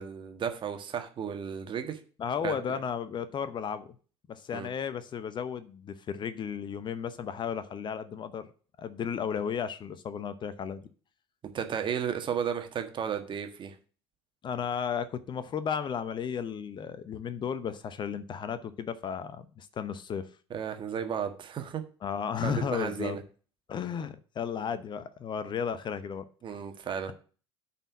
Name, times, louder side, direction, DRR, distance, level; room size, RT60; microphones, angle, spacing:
voice 1, 0.0-2.0 2.4-2.8 4.5-4.7 11.5-13.7 20.5-21.8 22.4-23.2 26.4-27.1, right 8 dB, 35° right, 6 dB, 1.5 m, -34 dB
voice 2, 2.2-3.9 4.3-8.5 8.8-10.8 14.4-20.3 22.0-23.2 23.7-26.3, left 7 dB, 35° left, 13 dB, 0.8 m, -34 dB
9.0 x 4.4 x 7.2 m, 0.39 s
figure-of-eight pair, 65°, 14 cm